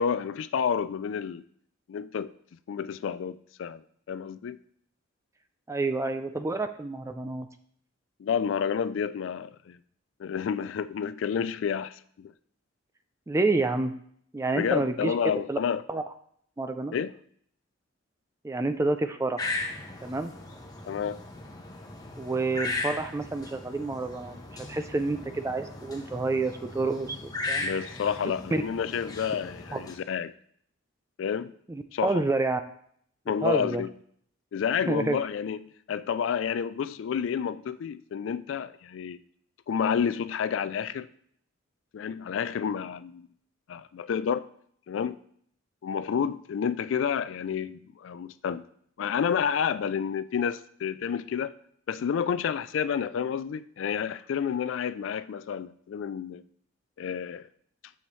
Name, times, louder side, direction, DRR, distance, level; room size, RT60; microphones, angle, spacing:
voice 1, 0.0-1.4 1.9-2.3 2.7-4.6 8.2-9.8 10.2-12.3 14.5-15.8 16.9-17.1 20.9-21.2 27.6-30.3 31.2-31.5 31.9-32.3 33.3-33.9 34.5-39.2 39.7-41.1 41.9-43.3 43.7-44.5 44.9-45.2 45.8-48.6 49.0-51.5 51.9-56.4 57.0-57.5, left 7 dB, 70° left, 14 dB, 0.3 m, -30 dB
voice 2, 5.7-7.5 13.3-13.9 14.3-15.1 15.5-15.6 15.9-16.0 16.6-16.9 18.4-19.5 20.0-20.3 22.2-27.2 27.5-27.6 28.5-28.6 31.7-32.6 33.4-33.8 34.9-35.2, right 3 dB, 15° right, 8 dB, 0.4 m, -28 dB
sound 1, 19.4-30.0, left 2 dB, 20° left, 1.0 m, -37 dB
10.0 x 7.0 x 3.1 m, 0.65 s
head